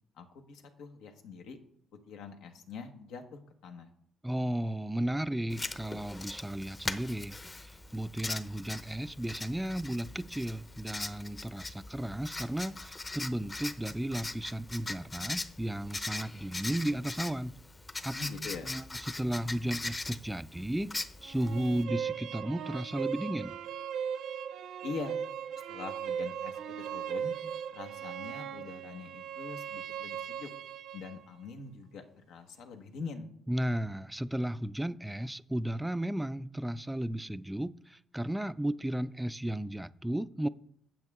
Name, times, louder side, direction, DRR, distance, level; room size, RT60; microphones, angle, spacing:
voice 1, 0.2-1.6 2.1-3.9 18.1-18.7 24.8-25.2 25.7-27.3 27.7-30.5 30.9-33.3, left 4 dB, 90° left, 5 dB, 1.3 m, -43 dB
voice 2, 4.2-17.5 18.0-18.2 18.7-20.9 21.2-23.6 33.5-40.5, right 1 dB, 10° right, 16 dB, 0.3 m, -34 dB
Writing, 5.5-21.8, left 2 dB, 25° left, 0.7 m, -41 dB
sound 1, 21.2-31.2, right 8 dB, 80° right, 0.7 m, -38 dB
9.1 x 7.6 x 3.6 m, 0.66 s
cardioid pair, 90°, 0 cm